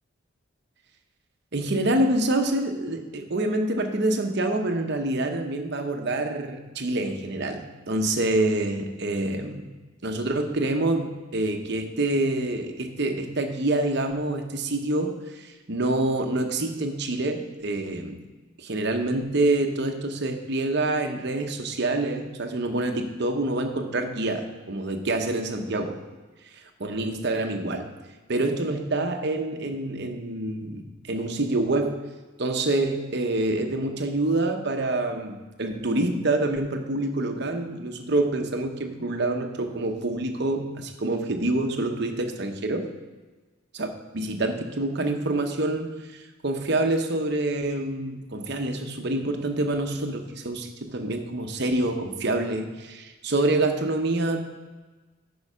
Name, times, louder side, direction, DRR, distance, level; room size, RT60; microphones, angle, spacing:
voice 1, 1.5-9.7 10.0-18.2 18.6-26.0 26.8-27.9 28.3-32.1 32.4-42.9 43.7-54.4, right 2 dB, 55° right, 5 dB, 0.9 m, -26 dB
9.6 x 4.7 x 5.5 m, 1.3 s
head